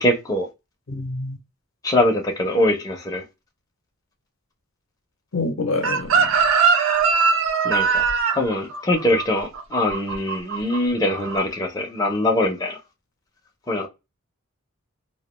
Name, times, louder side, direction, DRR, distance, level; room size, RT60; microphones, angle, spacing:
voice 1, 0.0-0.5 1.8-3.2 7.6-8.0 8.3-12.8 13.7-13.9, left 1 dB, 15° left, 0.4 m, -22 dB
voice 2, 0.9-1.4 5.3-6.4, left 3 dB, 65° left, 0.6 m, -27 dB
Chicken rooster, 5.8-10.8 11.1-11.4, right 5 dB, 60° right, 0.4 m, -21 dB
2.2 x 2.1 x 3.0 m
head